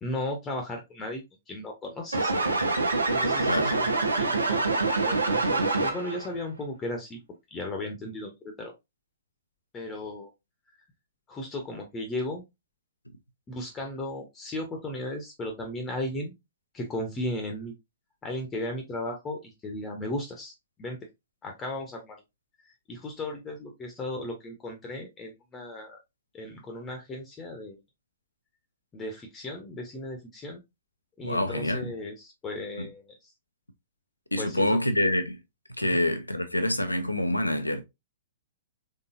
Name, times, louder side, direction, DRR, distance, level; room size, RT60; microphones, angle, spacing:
voice 1, 0.0-2.5 2.8-7.2 7.5-8.7 9.7-10.3 11.3-12.4 13.5-16.3 16.7-17.7 18.2-20.5 20.8-21.0 21.4-22.2 22.9-26.0 26.3-27.8 28.9-30.6 31.2-33.2 34.4-34.8 35.8-36.0, left 1 dB, 15° left, 0.9 m, -36 dB
sound 1, 2.1-6.3, right 3 dB, 75° right, 0.9 m, -25 dB
voice 2, 3.4-3.8 31.2-31.9 32.8-32.9 34.3-35.4 35.8-37.8, left 1 dB, 85° left, 0.6 m, -26 dB
3.8 x 3.7 x 2.6 m
figure-of-eight pair, 110°, 0 cm